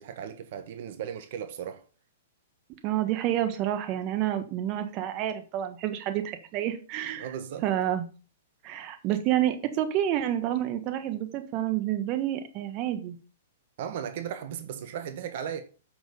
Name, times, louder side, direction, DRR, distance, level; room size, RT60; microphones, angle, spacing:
voice 1, 0.0-1.8 7.2-7.6 13.8-15.6, right 8 dB, 60° right, 1.3 m, -36 dB
voice 2, 2.8-7.3 7.6-8.0 8.6-13.1, right 12 dB, 40° right, 1.4 m, -29 dB
7.7 x 6.4 x 5.4 m
hypercardioid pair, 120°, 0 cm